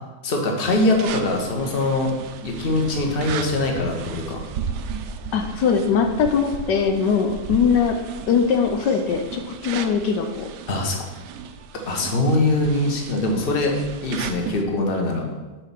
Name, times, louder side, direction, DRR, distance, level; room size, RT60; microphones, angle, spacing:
voice 1, 0.2-2.1 2.4-4.5 10.7-11.0 11.7-13.8 14.0-15.3, left 2 dB, 35° left, 1 dB, 1.3 m, -22 dB
sound 1, 0.7-14.6, right 6 dB, 75° right, 1.1 m, -35 dB
voice 2, 5.3-8.0 8.3-10.5, left 6 dB, 80° left, 5 dB, 1.3 m, -21 dB
7.2 x 5.0 x 5.8 m, 1.2 s
omnidirectional pair, 1.9 m